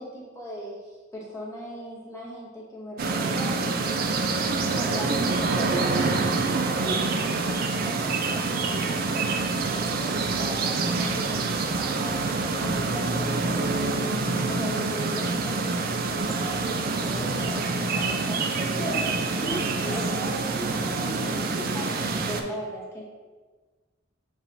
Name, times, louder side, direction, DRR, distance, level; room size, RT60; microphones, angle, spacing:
voice 1, 0.0-4.0 4.7-12.2 12.6-14.1 14.4-23.0, equal, 15° left, -5 dB, 0.9 m, -39 dB
sound 1, 3.0-22.4, right 3 dB, 50° right, 0.4 m, -26 dB
sound 2, 16.2-21.8, equal, 55° left, 1.2 m, -38 dB
7.2 x 2.8 x 2.6 m, 1.4 s
head